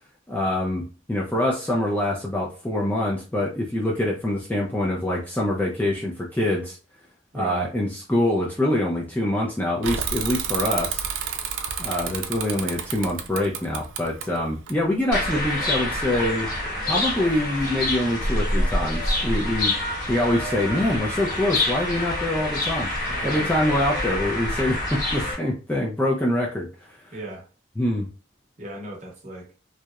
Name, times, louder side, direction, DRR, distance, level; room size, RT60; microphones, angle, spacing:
voice 1, 0.3-6.8 7.3-11.0 11.8-16.5 16.9-19.7 20.1-22.9 23.2-26.7 27.8-28.1, left 1 dB, 10° left, -3 dB, 0.3 m, -25 dB
voice 2, 7.3-7.6 23.1-23.5 27.1-27.4 28.6-29.5, right 1 dB, 40° right, -2 dB, 0.8 m, -36 dB
Bicycle / Mechanisms, 9.8-15.3, right 7 dB, 90° right, 0.4 m, -30 dB
sound 1, 15.1-25.3, left 1 dB, 45° left, 0.9 m, -26 dB
2.8 x 2.0 x 2.3 m, 0.35 s
head